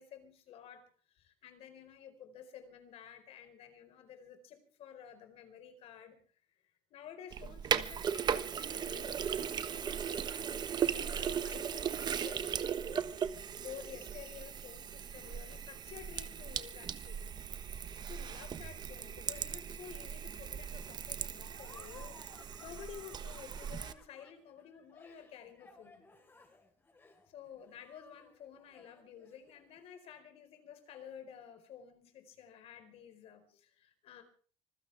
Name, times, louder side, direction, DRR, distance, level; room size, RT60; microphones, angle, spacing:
voice 1, 0.0-6.2 6.9-13.1 13.6-17.3 17.7-17.8 18.0-26.0 27.3-34.2, left 8 dB, 60° left, 8 dB, 4.6 m, -52 dB
Sink (filling or washing), 7.3-23.9, right 8 dB, 40° right, 1.2 m, -38 dB
Laughter, 21.5-29.8, left 3 dB, 20° left, 4.5 m, -60 dB
25.5 x 16.0 x 3.5 m, 0.43 s
cardioid pair, 130°, 11 cm